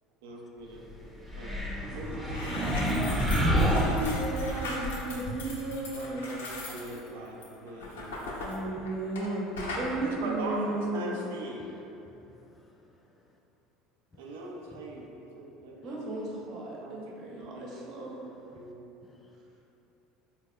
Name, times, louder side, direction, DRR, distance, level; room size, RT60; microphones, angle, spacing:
voice 1, 0.2-0.8 1.4-1.6 1.9-2.9 5.9-8.1 9.9-11.7 14.2-16.0 16.8-16.9 17.2-18.1 18.5-18.9, right 1 dB, 75° right, -1 dB, 0.5 m, -41 dB
sound 1, 1.3-4.6, equal, 10° right, 0.7 m, -28 dB
sound 2, 1.8-1.9 2.2-9.3 9.6-9.9, left 2 dB, 90° left, 0.5 m, -37 dB
voice 2, 3.6-6.3 8.4-11.3 15.8-18.3, right 2 dB, 55° right, -4 dB, 0.8 m, -34 dB
voice 3, 7.8-8.1 12.0-13.0 13.2-13.4 14.7-15.1 19.1-19.4, left 2 dB, 25° left, 1 dB, 0.3 m, -58 dB
4.0 x 2.2 x 3.6 m, 3.0 s
hypercardioid pair, 75°, 0 cm